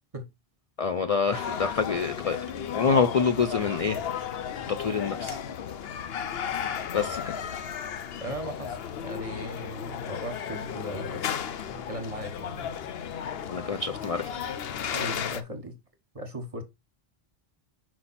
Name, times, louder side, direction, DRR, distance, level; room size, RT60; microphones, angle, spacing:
voice 1, 0.8-2.4 2.7-4.0 4.8-5.4 6.9-7.2 13.5-14.5, left 5 dB, 45° left, 0.5 m, -26 dB
sound 1, 1.3-15.4, left 8 dB, 70° left, 0.9 m, -34 dB
voice 2, 8.2-11.2 11.7-12.7 14.9-15.8 16.1-16.6, equal, 35° right, 1.3 m, -38 dB
5.7 x 4.7 x 4.1 m
omnidirectional pair, 1.1 m